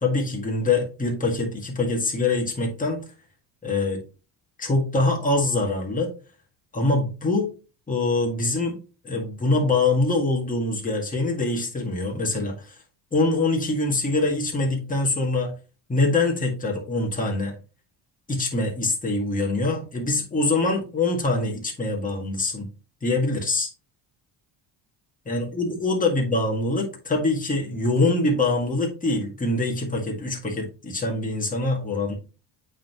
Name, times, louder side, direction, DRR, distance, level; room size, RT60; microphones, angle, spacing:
voice 1, 0.0-3.0 3.6-4.0 4.6-6.1 6.7-7.5 7.9-8.8 9.0-12.8 13.1-15.5 15.9-17.5 18.3-22.7 23.0-23.7 25.3-32.1, left 2 dB, 15° left, -1 dB, 1.9 m, -24 dB
8.3 x 3.9 x 3.0 m, 0.33 s
cardioid pair, 110°, 46 cm